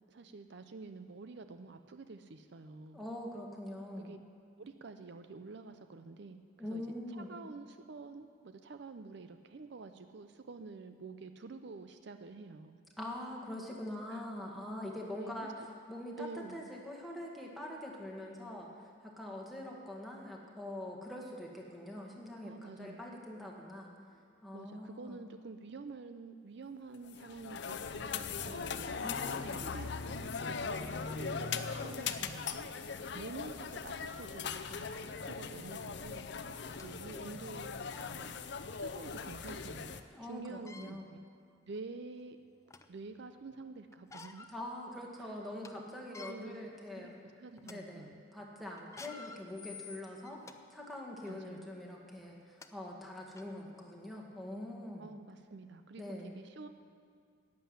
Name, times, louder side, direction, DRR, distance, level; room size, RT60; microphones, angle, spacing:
voice 1, 0.1-3.0 4.0-4.2 4.6-6.8 7.1-12.8 14.1-14.3 15.1-15.5 16.2-16.7 22.4-23.1 24.5-29.1 29.6-32.7 33.1-36.3 36.8-38.3 38.6-41.2 41.7-42.4 42.9-44.5 46.3-46.7 47.0-48.2 49.1-49.3 51.3-51.7 55.0-56.7, right 3 dB, 60° right, 8 dB, 0.5 m, -48 dB
voice 2, 2.9-4.1 6.6-7.3 13.0-15.5 15.9-16.3 16.5-18.7 19.0-23.9 24.4-25.2 29.0-29.6 40.1-41.1 44.5-47.1 47.6-50.4 50.7-55.1 56.0-56.3, left 1 dB, ahead, -2 dB, 1.7 m, -44 dB
sound 1, 27.1-40.0, left 5 dB, 60° left, 0.6 m, -40 dB
sound 2, 36.5-36.9 37.5-37.6 37.9-38.1 39.5-39.6 40.5-40.9 41.7-41.8 42.3-43.0 43.9-44.5 45.0-45.1 45.4-45.7 46.0-46.3 47.0-47.2 47.6-47.8 48.8-50.6 51.2-51.4 52.2-52.3 52.6-52.7 53.4-53.5, left 4 dB, 15° left, 0.5 m, -51 dB
11.5 x 7.6 x 9.8 m, 2.1 s
head